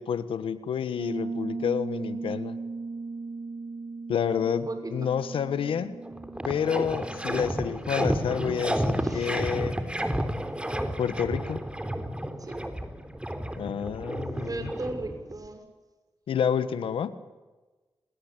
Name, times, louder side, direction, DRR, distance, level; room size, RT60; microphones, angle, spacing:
voice 1, 0.0-2.6 4.1-6.0 6.4-9.8 11.0-11.6 13.6-14.7 16.3-17.1, left 7 dB, 90° left, 13 dB, 1.5 m, -29 dB
Piano, 1.0-9.5, right 3 dB, 65° right, 4.9 m, -38 dB
voice 2, 4.4-4.9 9.0-9.3 12.4-12.6 14.4-15.6, right 2 dB, 45° right, 7 dB, 6.7 m, -37 dB
sound 1, 5.7-5.8 6.0-15.5, right 1 dB, 10° right, 3.8 m, -31 dB
27.5 x 20.5 x 9.1 m, 1.2 s
cardioid pair, 45°, 9 cm